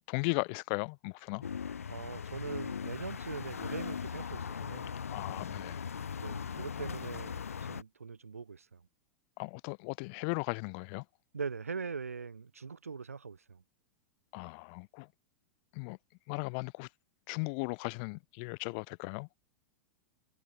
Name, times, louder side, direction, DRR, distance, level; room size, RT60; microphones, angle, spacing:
voice 1, 0.1-1.4 5.1-5.8 9.4-11.0 14.3-15.1 15.7-16.0 16.3-16.9 17.3-19.3, left 36 dB, 50° left, 0.5 m, -37 dB
sound 1, 1.4-7.8, left 7 dB, 80° left, 0.8 m, -39 dB
voice 2, 1.9-5.0 6.2-8.8 11.3-13.6, right 5 dB, 85° right, 1.0 m, -42 dB
figure-of-eight pair, 95°, 8 cm